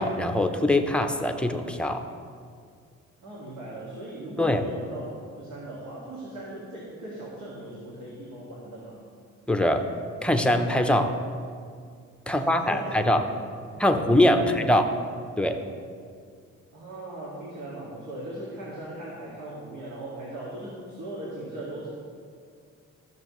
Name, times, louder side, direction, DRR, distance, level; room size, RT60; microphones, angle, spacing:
voice 1, 0.0-2.0 4.4-4.6 9.5-9.9 10.2-11.2 12.3-13.2 13.8-14.4 14.7-14.8 15.4-15.6, left 1 dB, 5° left, 5 dB, 0.7 m, -22 dB
voice 2, 3.2-5.1 5.4-9.0 12.3-12.9 13.3-13.4 14.3-14.7 16.7-21.9, right 1 dB, 70° right, -6 dB, 2.1 m, -39 dB
14.0 x 6.5 x 3.1 m, 2.2 s
cardioid pair, 90°, 30 cm